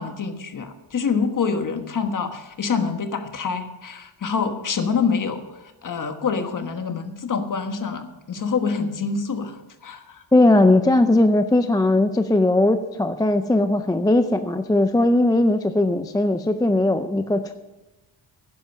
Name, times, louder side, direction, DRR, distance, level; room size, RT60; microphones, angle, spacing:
voice 1, 0.0-10.2, left 5 dB, 40° left, 7 dB, 1.3 m, -26 dB
voice 2, 10.3-17.5, left 2 dB, 10° left, 9 dB, 0.4 m, -19 dB
11.0 x 10.5 x 6.5 m, 1.0 s
wide cardioid pair, 140°, 49 cm